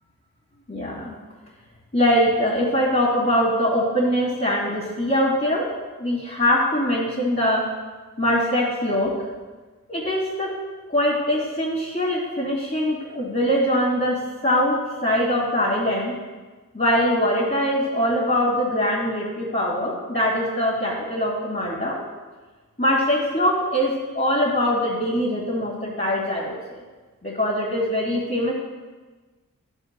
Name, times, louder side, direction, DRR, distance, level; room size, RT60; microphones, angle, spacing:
voice 1, 0.7-1.1 1.9-5.6 6.0-7.6 8.2-9.1 9.9-10.5 10.9-14.7 15.0-16.1 16.7-21.9 22.8-26.5 27.2-28.5, equal, 35° left, -8 dB, 2.2 m, -22 dB
11.5 x 9.1 x 2.2 m, 1.3 s
wide cardioid pair, 55°, 34 cm